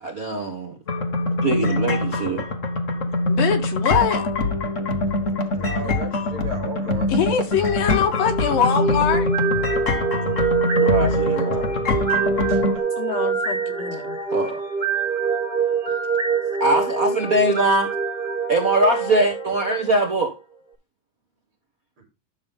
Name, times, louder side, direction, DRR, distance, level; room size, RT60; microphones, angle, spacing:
voice 1, 0.0-0.7 1.4-2.5 10.8-11.7 14.3-14.6 16.6-17.9 18.5-20.3, right 1 dB, 70° right, 0.8 m, -22 dB
sound 1, 0.9-12.8, left 2 dB, 55° left, 0.8 m, -24 dB
voice 2, 3.3-4.2 5.8-5.9 7.1-9.3 13.0-14.2, left 7 dB, 85° left, 3.7 m, -23 dB
voice 3, 5.6-7.1 11.1-11.2 12.5-12.9 22.0-22.1, right 2 dB, 40° right, 4.2 m, -35 dB
sound 2, 8.1-20.2, right 5 dB, 15° right, 4.9 m, -25 dB
12.5 x 7.0 x 3.5 m
omnidirectional pair, 3.9 m